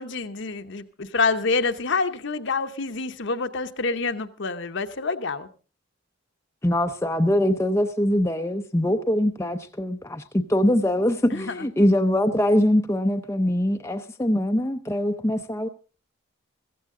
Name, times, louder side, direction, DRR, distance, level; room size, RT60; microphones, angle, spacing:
voice 1, 0.0-5.5 11.3-11.7, left 4 dB, 55° left, 0.9 m, -27 dB
voice 2, 6.6-15.7, left 1 dB, 15° left, 0.6 m, -23 dB
15.5 x 15.0 x 3.7 m
head